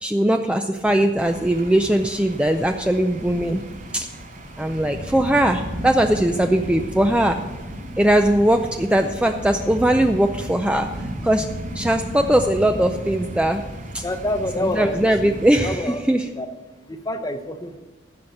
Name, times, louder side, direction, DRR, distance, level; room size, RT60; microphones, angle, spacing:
voice 1, 0.0-3.6 3.9-4.1 4.6-7.4 8.0-10.9 11.2-11.5 11.8-13.6 13.9-14.0 14.6-16.3, right 1 dB, 5° right, 5 dB, 0.4 m, -20 dB
sound 1, 1.2-15.8, right 1 dB, 50° right, 3.9 m, -34 dB
voice 2, 14.0-16.0 16.4-16.5 16.9-17.8, left 1 dB, 20° left, 8 dB, 0.8 m, -27 dB
14.5 x 5.6 x 6.5 m, 1.3 s
head